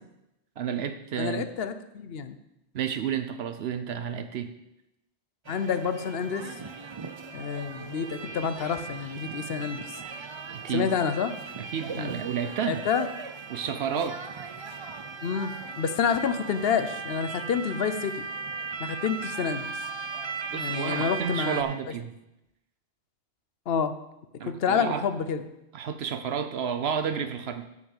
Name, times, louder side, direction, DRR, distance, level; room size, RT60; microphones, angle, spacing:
voice 1, 0.6-1.5 2.7-4.5 10.5-10.9 11.6-12.8 13.5-14.2 20.5-22.2 24.4-25.0 25.7-27.7, right 7 dB, 70° right, 9 dB, 0.9 m, -31 dB
voice 2, 1.2-2.4 5.5-6.5 7.3-10.0 10.7-11.3 12.0-12.2 12.7-13.1 15.2-18.3 18.8-19.7 20.5-21.6 23.7-23.9 24.4-25.4, left 6 dB, 65° left, 10 dB, 0.9 m, -28 dB
sound 1, 5.5-21.6, right 5 dB, 35° right, 0.5 m, -38 dB
7.1 x 7.1 x 6.5 m, 0.89 s
omnidirectional pair, 1.1 m